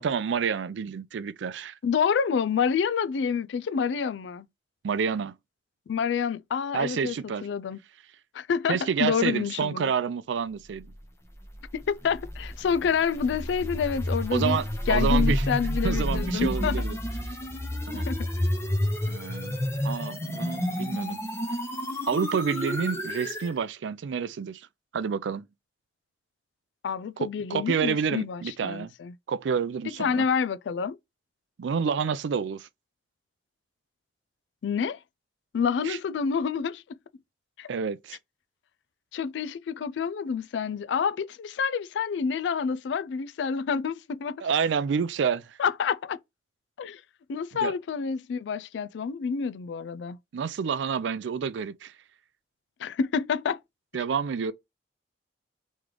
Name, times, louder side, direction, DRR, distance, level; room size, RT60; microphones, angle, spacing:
voice 1, 0.0-1.7 4.8-5.3 6.7-7.5 8.7-10.9 14.3-15.5 15.8-17.0 17.9-18.1 19.1-21.2 22.1-24.7 24.9-25.4 27.2-28.9 29.3-30.2 31.6-32.7 35.8-36.0 37.7-38.2 44.4-45.6 47.6-47.7 50.3-51.9 53.9-54.5, right 6 dB, 85° right, 0.4 m, -29 dB
voice 2, 1.8-4.5 5.9-7.2 7.4-7.8 8.3-9.9 11.7-14.6 14.9-16.8 17.9-18.3 26.8-29.1 30.0-31.0 34.6-35.0 35.5-36.8 37.6-37.7 39.1-44.4 45.6-46.2 46.8-47.0 47.3-50.2 52.8-53.6, left 6 dB, 85° left, 0.3 m, -28 dB
sound 1, 11.4-23.5, equal, 15° left, 0.8 m, -30 dB
3.2 x 3.1 x 3.7 m
head